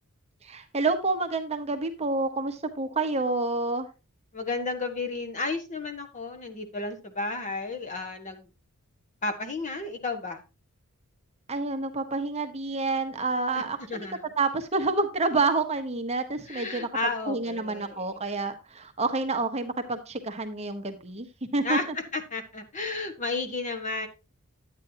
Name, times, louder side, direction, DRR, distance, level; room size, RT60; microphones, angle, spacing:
voice 1, 0.4-3.9 11.5-14.1 14.4-16.9 17.2-21.3 21.5-21.8, right 3 dB, 30° right, 6 dB, 1.0 m, -28 dB
voice 2, 4.3-8.5 9.2-10.4 13.5-13.6 13.9-14.2 16.5-18.0 21.6-24.1, left 3 dB, 35° left, 7 dB, 1.3 m, -32 dB
10.5 x 8.8 x 2.8 m, 0.28 s
head